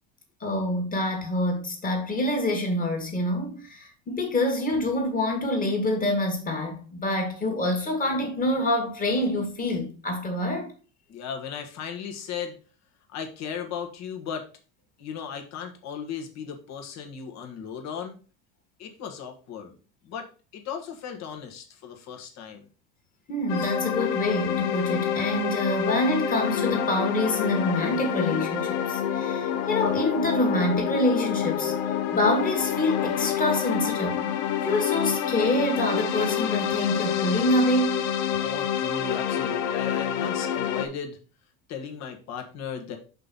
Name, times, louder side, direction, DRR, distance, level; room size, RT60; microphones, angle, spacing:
voice 1, 0.4-10.7 23.3-31.7 32.1-34.3 34.6-38.0, left 1 dB, 25° left, 2.0 m, -26 dB
voice 2, 11.1-12.6 13.1-14.5 15.0-18.2 18.8-19.7 20.0-20.3 20.5-22.7 38.4-41.2 41.7-43.0, left 7 dB, 50° left, 1.6 m, -36 dB
sound 1, 23.5-40.9, left 9 dB, 75° left, 1.0 m, -27 dB
5.5 x 4.0 x 5.5 m
cardioid pair, 140°, 36 cm